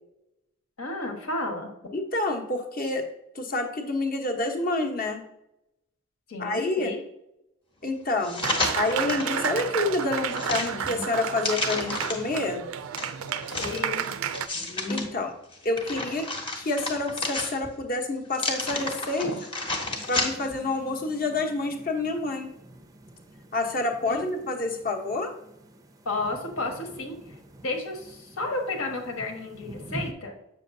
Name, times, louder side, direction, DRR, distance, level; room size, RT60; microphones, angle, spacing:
voice 1, 0.8-1.7 6.3-7.0 13.6-14.1 19.2-19.4 24.0-24.3 26.0-27.2 27.6-30.3, left 2 dB, 75° left, 2 dB, 1.5 m, -32 dB
voice 2, 1.9-3.1 3.3-5.2 6.4-6.9 7.8-8.5 8.7-12.7 14.9-15.3 15.6-16.3 16.6-19.3 20.1-22.5 23.5-25.3, left 2 dB, 40° left, 4 dB, 1.0 m, -28 dB
sound 1, 8.2-9.3 9.8-12.4 13.0-15.1 15.5-17.8 18.3-20.6 21.0-21.1, left 2 dB, 25° left, 1.0 m, -32 dB
Applause, 8.4-14.5, right 8 dB, 75° right, 0.4 m, -31 dB
sound 2, 19.9-30.1, right 1 dB, 15° right, 0.5 m, -46 dB
7.7 x 6.4 x 2.7 m, 0.84 s
head